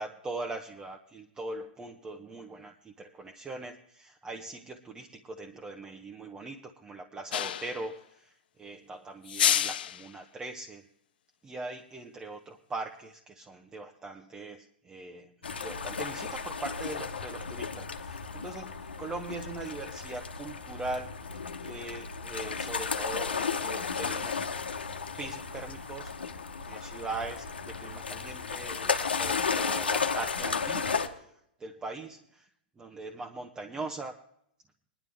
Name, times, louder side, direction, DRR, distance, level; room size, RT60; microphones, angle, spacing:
voice 1, 0.0-10.9 11.4-24.4 25.2-26.1 26.7-31.3 31.6-32.5 32.8-34.1, right 2 dB, 15° right, 3 dB, 1.0 m, -41 dB
sound 1, 7.3-7.9 9.3-10.1, left 10 dB, 70° left, 0.4 m, -28 dB
sound 2, 15.4-31.1, left 5 dB, 90° left, 1.2 m, -34 dB
20.0 x 11.0 x 3.5 m, 0.71 s
hypercardioid pair, 115°, 5 cm